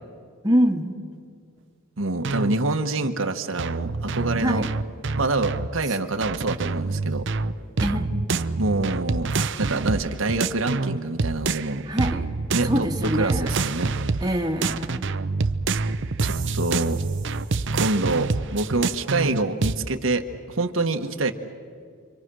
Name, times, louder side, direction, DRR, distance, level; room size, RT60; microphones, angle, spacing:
voice 1, 0.4-1.0 4.4-4.7 7.8-8.1 11.9-12.3 12.6-13.6 14.2-15.1, equal, 20° right, 2 dB, 1.6 m, -24 dB
voice 2, 2.0-4.7 5.2-7.2 8.6-9.3 9.6-11.8 12.5-12.9 13.2-13.9 16.2-17.0 17.7-21.3, right 2 dB, 80° right, 5 dB, 1.4 m, -26 dB
sound 1, 2.2-2.6 3.6-5.7 6.2-11.7 12.0-14.3 14.6-19.8, right 3 dB, 60° right, 0.7 m, -26 dB
29.5 x 24.5 x 6.3 m, 2.2 s
head